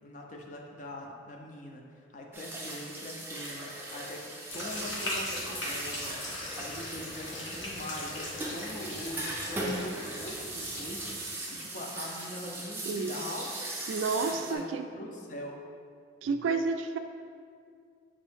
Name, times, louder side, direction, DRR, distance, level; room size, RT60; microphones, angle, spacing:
voice 1, 0.0-4.3 4.5-6.1 6.6-13.5 14.3-14.6 14.9-15.6, left 1 dB, 40° left, 0 dB, 0.5 m, -42 dB
sound 1, 2.3-14.6, right 1 dB, 10° right, 0.4 m, -39 dB
sound 2, 4.5-11.2, left 1 dB, 75° left, 0.9 m, -39 dB
voice 2, 13.9-14.8 16.2-17.0, right 4 dB, 80° right, 8 dB, 0.3 m, -30 dB
5.1 x 2.7 x 3.4 m, 2.2 s
head